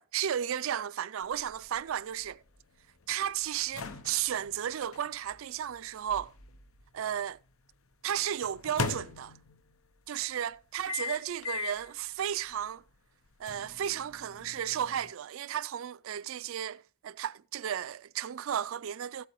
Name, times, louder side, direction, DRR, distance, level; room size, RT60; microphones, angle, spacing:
voice 1, 0.0-2.4 3.1-6.3 6.9-7.4 8.0-9.3 10.1-12.8 13.4-19.3, right 10 dB, 80° right, 0.4 m, -34 dB
sound 1, 1.2-7.3 8.4-9.7 10.9-11.9 12.4-12.5 13.5-15.1, left 5 dB, 90° left, 0.9 m, -40 dB
15.0 x 8.4 x 3.0 m
head